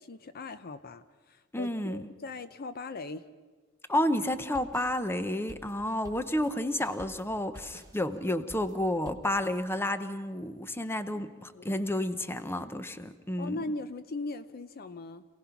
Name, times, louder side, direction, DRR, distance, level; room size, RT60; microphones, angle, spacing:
voice 1, 0.0-3.2 11.1-11.2 11.5-11.8 13.4-15.3, left 2 dB, 45° left, 12 dB, 0.6 m, -39 dB
voice 2, 1.5-2.1 3.9-13.6, left 1 dB, 10° left, 10 dB, 0.8 m, -31 dB
sound 1, 4.3-9.4, right 1 dB, 15° right, 1.4 m, -51 dB
27.5 x 17.5 x 5.8 m, 1.3 s
head